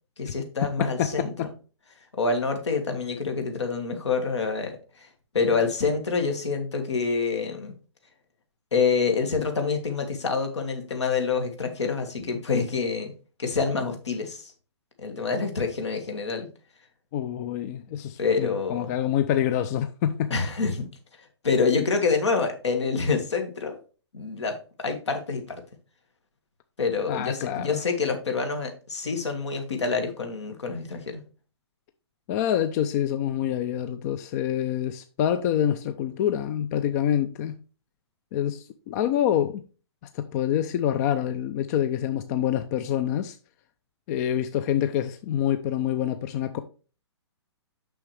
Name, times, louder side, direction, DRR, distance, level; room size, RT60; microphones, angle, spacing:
voice 1, 0.2-1.3 2.2-5.1 5.3-7.7 8.7-13.1 13.4-14.5 15.0-16.5 18.2-18.9 20.3-20.9 21.4-23.8 24.1-24.6 24.8-25.6 26.8-31.2, left 4 dB, 75° left, 1.9 m, -27 dB
voice 2, 17.1-20.3 27.1-27.8 32.3-37.6 38.3-39.6 40.1-43.4 44.1-46.6, left 10 dB, 35° left, 0.5 m, -26 dB
6.2 x 6.1 x 3.3 m
hypercardioid pair, 125°, 15 cm